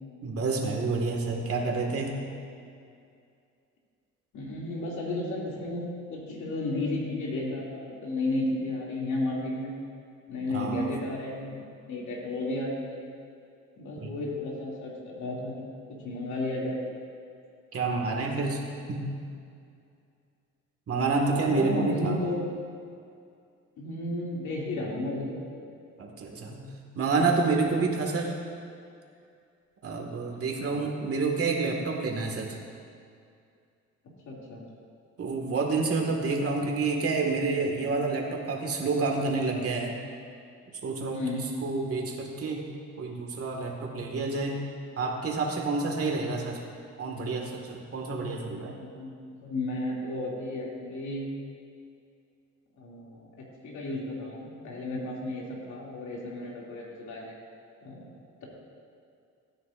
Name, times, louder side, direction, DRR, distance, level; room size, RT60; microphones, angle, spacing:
voice 1, 0.2-2.1 10.5-10.9 14.0-14.1 17.7-18.6 18.9-19.0 20.9-22.2 26.0-28.3 29.8-32.5 35.2-40.0 40.8-42.6 43.0-44.6 45.0-46.6 47.0-48.7, right 3 dB, 50° right, 0 dB, 1.9 m, -28 dB
voice 2, 4.3-9.7 10.3-11.6 11.9-13.0 13.8-15.5 16.0-16.8 21.3-22.4 23.8-25.4 30.3-30.8 34.3-34.6 41.1-41.5 48.6-51.3 52.8-53.3 53.6-57.3 57.8-58.1, left 2 dB, 75° left, -4 dB, 2.7 m, -33 dB
16.5 x 9.6 x 2.6 m, 2.4 s
cardioid pair, 90°, 30 cm